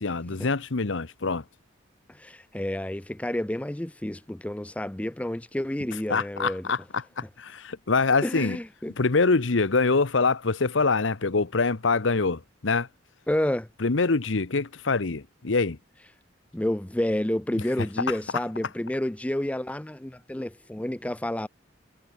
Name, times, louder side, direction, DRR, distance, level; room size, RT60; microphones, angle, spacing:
voice 1, 0.0-1.4 6.1-8.6 9.0-12.9 13.8-15.8 18.1-18.2, left 4 dB, 80° left, 1.0 m, -25 dB
voice 2, 2.1-6.7 8.2-8.9 13.3-13.7 16.5-21.5, left 1 dB, 5° left, 0.4 m, -30 dB
head